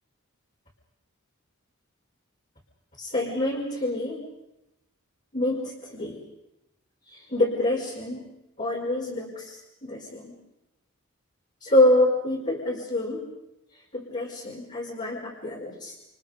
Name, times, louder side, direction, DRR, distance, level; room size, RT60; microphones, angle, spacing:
voice 1, 3.0-4.2 5.3-6.2 7.1-8.2 8.6-10.3 11.6-13.2 13.9-15.9, left 1 dB, 35° left, -5 dB, 5.4 m, -26 dB
29.5 x 29.0 x 5.3 m, 0.89 s
head